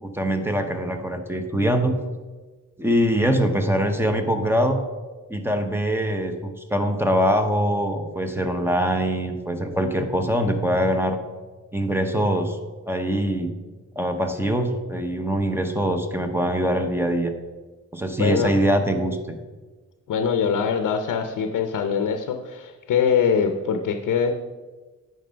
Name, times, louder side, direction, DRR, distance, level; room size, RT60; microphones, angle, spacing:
voice 1, 0.0-1.9 2.8-4.8 5.3-11.2 11.7-12.6 12.9-13.5 14.0-17.3 17.9-19.4, equal, 5° right, 6 dB, 0.8 m, -23 dB
voice 2, 18.2-18.5 20.1-24.3, left 6 dB, 75° left, 6 dB, 0.7 m, -23 dB
9.2 x 5.4 x 5.1 m, 1.3 s
wide cardioid pair, 120°, 32 cm